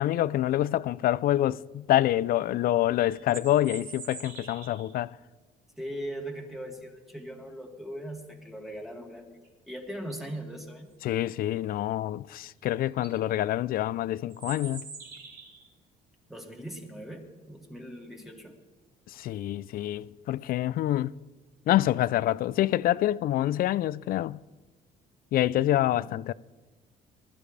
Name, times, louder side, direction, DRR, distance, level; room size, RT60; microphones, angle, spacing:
voice 1, 0.0-5.2 11.0-14.9 19.1-21.1 21.7-24.4 25.3-26.3, left 13 dB, 60° left, 0.4 m, -26 dB
sound 1, 3.1-4.9 9.4-9.5 9.9-10.4 12.4-12.5 12.9-13.1 14.3-15.7, right 5 dB, 65° right, 2.9 m, -44 dB
voice 2, 5.8-9.3 9.7-10.9 16.3-18.5 25.9-26.1, right 1 dB, ahead, 2.3 m, -40 dB
20.5 x 12.5 x 3.3 m
cardioid pair, 110°, 17 cm